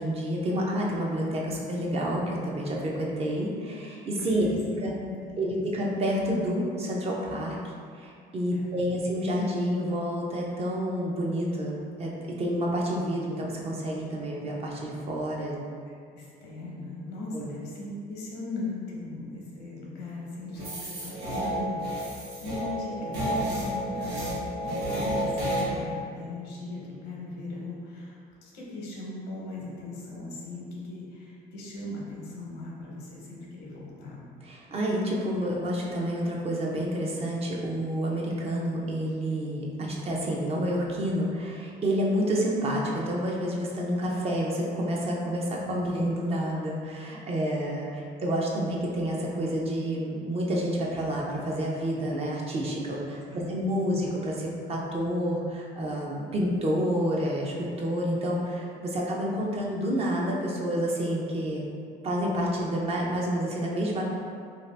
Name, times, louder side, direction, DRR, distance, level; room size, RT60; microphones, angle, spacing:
voice 1, 0.0-4.5 4.8-4.9 5.4-7.6 8.0-15.6 17.3-17.5 34.4-53.2 53.5-61.7 62.0-64.0, equal, 35° right, -3 dB, 0.5 m, -29 dB
voice 2, 4.2-5.6 8.5-9.0 15.5-15.6 16.1-34.2 45.6-45.9 53.2-54.1, left 2 dB, 85° left, -4 dB, 0.8 m, -39 dB
sound 1, 20.6-25.6, equal, 80° right, 0.9 m, -31 dB
2.7 x 2.4 x 3.2 m, 2.3 s
cardioid pair, 110°, 17 cm